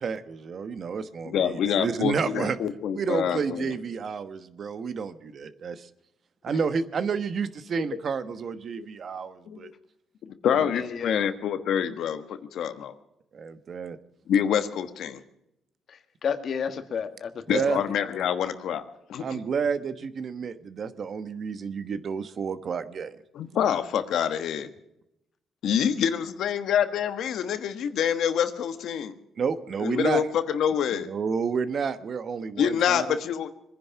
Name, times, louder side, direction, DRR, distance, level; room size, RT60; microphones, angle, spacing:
voice 1, 0.0-2.6 2.9-5.9 6.4-9.7 10.6-10.7 13.3-14.0 17.5-17.8 19.2-23.2 29.4-30.3 30.9-33.2, right 5 dB, 50° right, 12 dB, 1.1 m, -30 dB
voice 2, 1.2-3.7 8.8-8.9 9.5-9.7 10.2-12.9 14.3-15.2 17.5-18.8 19.1-19.4 23.3-24.7 25.6-29.1 29.8-31.1 32.6-33.5, left 8 dB, 75° left, 11 dB, 1.2 m, -26 dB
voice 3, 10.7-11.3 15.9-18.3, left 7 dB, 55° left, 10 dB, 1.5 m, -32 dB
22.5 x 10.5 x 5.8 m, 0.84 s
cardioid pair, 90°, 0 cm